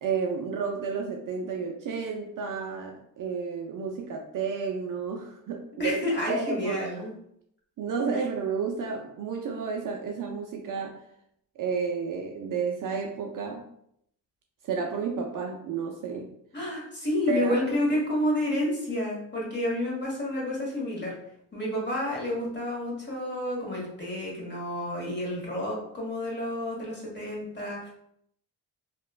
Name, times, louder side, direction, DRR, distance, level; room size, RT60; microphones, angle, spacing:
voice 1, 0.0-6.0 6.3-7.0 7.8-11.0 11.6-13.6 14.6-16.3 17.3-17.6, right 5 dB, 45° right, 1 dB, 0.5 m, -31 dB
voice 2, 5.8-7.1 16.5-21.2 21.5-27.9, left 1 dB, 25° left, -4 dB, 1.3 m, -30 dB
2.9 x 2.3 x 2.3 m, 0.72 s
supercardioid pair, 60°, 45 cm